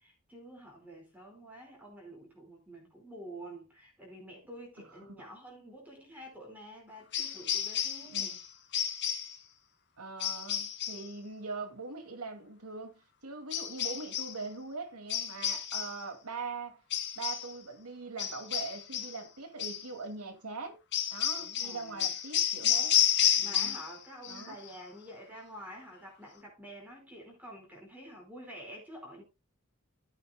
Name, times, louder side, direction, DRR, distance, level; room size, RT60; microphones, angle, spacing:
voice 1, 0.0-8.3 21.3-22.1 23.4-29.2, equal, 10° right, 4.9 m, -48 dB
voice 2, 4.8-5.2 8.1-8.4 10.0-16.8 17.1-20.8 21.1-23.0 23.4-23.8 24.3-24.6, right 4 dB, 85° right, 2.3 m, -42 dB
sound 1, 7.1-8.5 8.7-9.4 10.2-11.1 13.5-14.4 15.1-16.0 16.9-17.5 18.2-19.2 19.6-19.9 20.9-24.0 24.2-24.7, left 10 dB, 50° left, 2.2 m, -31 dB
15.5 x 8.7 x 2.2 m
head